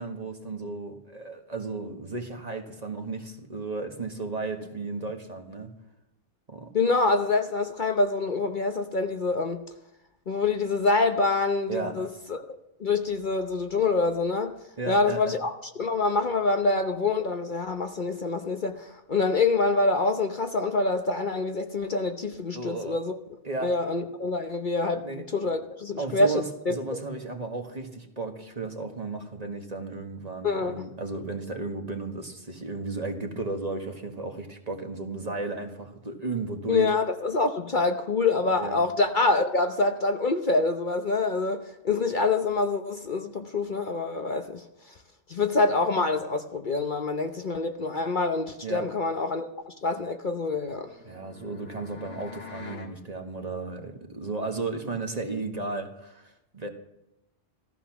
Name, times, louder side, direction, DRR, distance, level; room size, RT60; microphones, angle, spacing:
voice 1, 0.0-5.7 6.5-6.7 11.7-12.1 14.8-15.4 22.5-23.0 23.4-23.7 25.0-25.5 26.0-36.9 38.6-38.8 48.6-48.9 51.0-56.7, right 3 dB, 35° right, 1.7 m, -34 dB
voice 2, 6.7-9.6 10.3-12.5 12.8-14.5 14.9-15.5 15.8-23.1 23.6-26.7 30.4-30.8 36.7-41.6 41.8-44.6 45.3-50.9, left 3 dB, 45° left, 1.0 m, -26 dB
sound 1, 50.4-53.0, left 5 dB, 80° left, 2.2 m, -45 dB
15.5 x 14.5 x 6.1 m
omnidirectional pair, 1.2 m